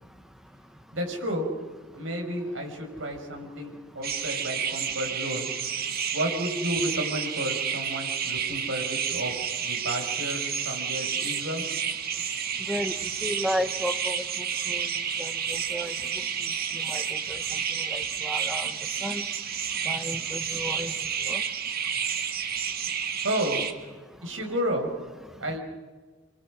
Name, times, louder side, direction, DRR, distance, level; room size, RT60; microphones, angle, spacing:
voice 1, 0.9-1.5 1.9-5.5 6.1-9.3 9.6-11.6 23.2-23.6 24.2-24.9 25.4-25.6, equal, 70° right, 2 dB, 5.8 m, -31 dB
sound 1, 4.0-23.7, right 7 dB, 50° right, 1.8 m, -30 dB
voice 2, 12.7-14.2 14.7-14.9 15.2-15.9 16.7-17.4 17.8-18.7 19.0-19.2 19.8-20.9 21.2-21.4, equal, 5° right, 7 dB, 1.5 m, -33 dB
28.0 x 24.0 x 6.4 m, 1.4 s
head